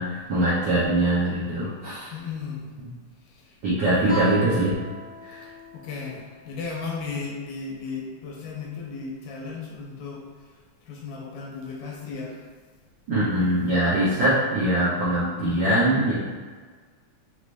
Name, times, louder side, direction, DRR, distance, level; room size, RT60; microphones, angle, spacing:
voice 1, 0.0-2.1 2.8-2.9 3.6-4.7 5.3-5.5 13.1-16.1, right 1 dB, 80° right, -10 dB, 1.0 m, -22 dB
voice 2, 2.1-2.7 3.3-3.6 4.0-4.2 5.3-5.5 5.7-10.2 10.8-12.4 15.4-15.6, left 4 dB, 75° left, -2 dB, 1.8 m, -35 dB
Guitar, 4.1-7.3, right 2 dB, 45° left, 2.0 m, -38 dB
5.1 x 3.2 x 2.5 m, 1.5 s
omnidirectional pair, 3.4 m